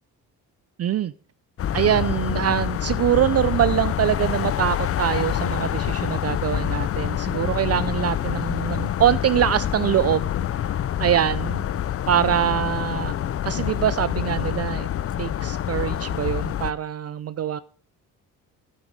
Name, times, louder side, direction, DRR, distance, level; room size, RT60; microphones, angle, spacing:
voice 1, 0.8-1.1 1.7-10.6 11.0-11.7 12.1-13.1 13.4-14.9 15.2-17.6, right 10 dB, 40° right, 0.4 m, -23 dB
sound 1, 1.6-16.7, left 10 dB, 40° left, 0.5 m, -26 dB
9.6 x 9.5 x 5.1 m
supercardioid pair, 75°, 37 cm